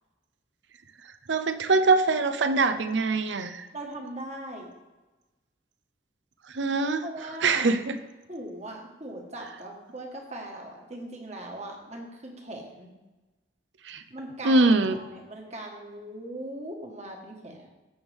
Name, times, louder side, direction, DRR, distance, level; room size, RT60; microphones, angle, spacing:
voice 1, 1.3-3.7 6.5-7.0 7.4-8.0 13.8-14.0 14.4-15.0, right 3 dB, 75° right, 10 dB, 0.7 m, -23 dB
voice 2, 3.7-4.7 7.0-7.7 8.3-12.9 14.1-17.7, right 1 dB, 35° right, 1 dB, 1.5 m, -40 dB
15.0 x 6.3 x 3.5 m, 1.1 s
head